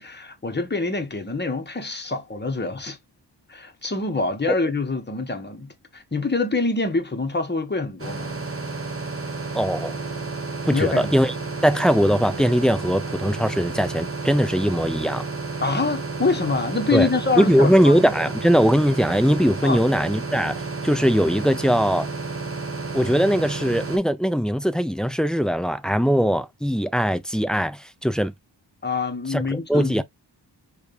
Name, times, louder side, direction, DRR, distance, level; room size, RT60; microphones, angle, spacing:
voice 1, 0.0-3.0 3.5-8.4 10.7-11.1 15.6-17.9 19.6-19.8 28.8-30.0, left 3 dB, 25° left, 1.1 m, -25 dB
sound 1, 8.0-24.0, right 4 dB, 30° right, 0.9 m, -31 dB
voice 2, 9.5-10.0 10.7-11.3 11.6-15.3 16.9-17.1 17.4-22.1 22.9-28.3 29.3-30.0, equal, ahead, 0.4 m, -20 dB
4.4 x 2.5 x 3.2 m
wide cardioid pair, 75°, 43 cm